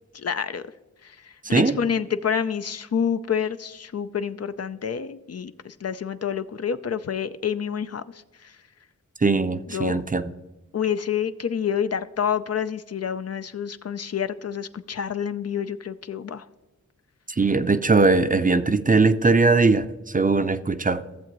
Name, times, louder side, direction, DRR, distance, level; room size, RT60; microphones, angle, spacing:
voice 1, 0.1-0.6 1.0-8.6 9.7-10.0 10.7-16.5, left 7 dB, 50° left, 11 dB, 0.5 m, -28 dB
voice 2, 9.2-10.2 17.4-19.9 20.1-21.0, right 3 dB, 25° right, 11 dB, 0.5 m, -20 dB
14.5 x 7.2 x 3.0 m, 1.1 s
cardioid pair, 45°, 31 cm